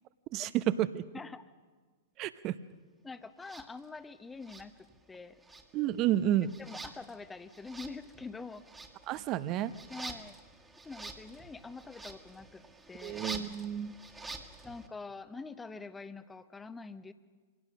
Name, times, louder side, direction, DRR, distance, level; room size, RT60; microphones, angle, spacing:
voice 1, 0.3-1.0 2.2-2.6 5.7-6.5 9.1-9.7 13.0-13.9, right 12 dB, 35° right, 14 dB, 0.9 m, -30 dB
voice 2, 3.0-4.7 5.1-5.4 6.6-8.6 9.9-10.4 10.8-13.2 14.6-17.1, left 4 dB, 10° left, 12 dB, 1.0 m, -45 dB
sound 1, 3.4-3.7 4.4-5.2 5.4-14.9, right 3 dB, 10° right, 1.8 m, -47 dB
25.0 x 17.5 x 6.2 m, 1.5 s
figure-of-eight pair, 105°, 0 cm